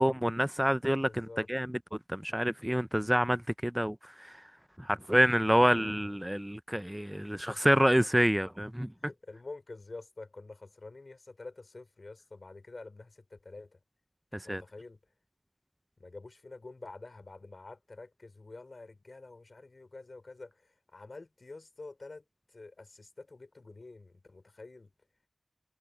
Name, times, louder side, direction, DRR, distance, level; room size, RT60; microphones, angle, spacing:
voice 1, 0.0-1.8 2.1-4.4 4.8-8.9 14.5-14.6, equal, 5° right, 0.4 m, -27 dB
voice 2, 1.0-1.5 5.7-6.2 7.2-8.0 8.9-13.8 14.4-15.0 16.0-24.9, left 3 dB, 60° left, 4.0 m, -48 dB
wide cardioid pair, 55°, 0 cm